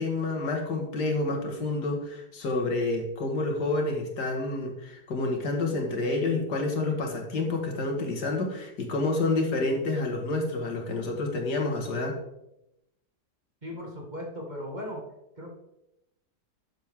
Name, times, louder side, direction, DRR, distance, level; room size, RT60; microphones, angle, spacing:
voice 1, 0.0-12.1, left 2 dB, 80° left, 1 dB, 2.3 m, -29 dB
voice 2, 13.6-15.1 15.4-15.5, equal, 25° right, -1 dB, 1.9 m, -37 dB
12.0 x 7.5 x 3.6 m, 0.87 s
omnidirectional pair, 1.8 m